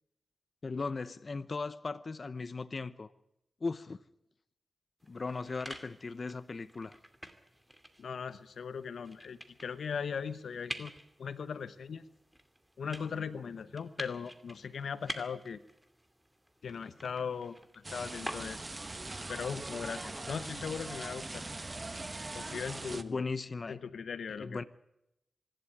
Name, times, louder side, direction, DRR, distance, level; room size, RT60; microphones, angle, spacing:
voice 1, 0.6-3.1 3.6-4.0 5.1-6.9 22.9-23.8 24.4-24.6, left 4 dB, 50° left, 13 dB, 0.8 m, -37 dB
sound 1, 5.0-18.9, equal, 10° right, 2.5 m, -48 dB
voice 2, 8.0-10.9 11.2-12.1 12.8-15.6 16.6-18.6 19.3-21.4 22.3-23.2 23.7-24.6, left 6 dB, 85° left, 14 dB, 1.0 m, -39 dB
sound 2, 17.8-23.0, right 2 dB, 30° right, 1.2 m, -41 dB
25.0 x 12.0 x 9.6 m, 0.84 s
cardioid pair, 65°, 0 cm